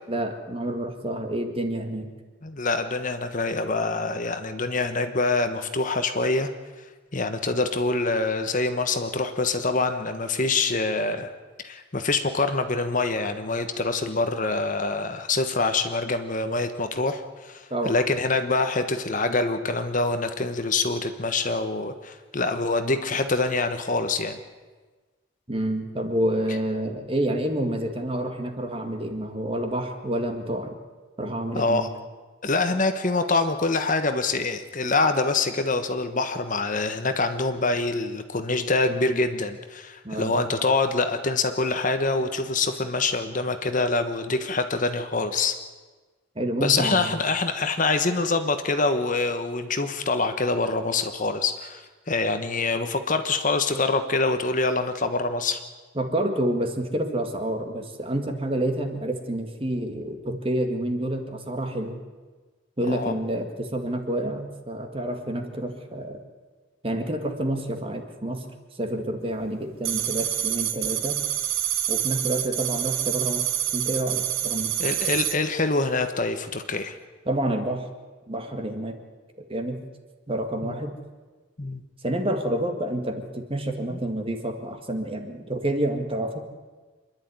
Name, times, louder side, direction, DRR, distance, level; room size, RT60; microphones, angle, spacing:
voice 1, 0.1-2.1 17.7-18.0 25.5-30.8 31.2-31.9 40.0-40.4 46.4-47.1 56.0-62.0 62.8-66.2 66.8-68.5 68.8-71.2 71.9-74.7 77.3-77.9 78.3-79.0 79.5-79.8 80.3-81.0 82.0-86.4, right 1 dB, 25° right, 5 dB, 1.9 m, -28 dB
voice 2, 2.4-6.5 7.1-11.3 11.6-24.4 31.5-31.9 32.4-45.5 46.6-51.8 52.1-55.6 62.9-63.1 74.8-76.9 80.6-80.7 81.6-81.8 83.9-84.0, left 3 dB, 40° left, 8 dB, 1.2 m, -25 dB
sound 1, 69.9-75.4, right 11 dB, 80° right, 1.6 m, -27 dB
26.5 x 11.0 x 9.4 m, 1.3 s
head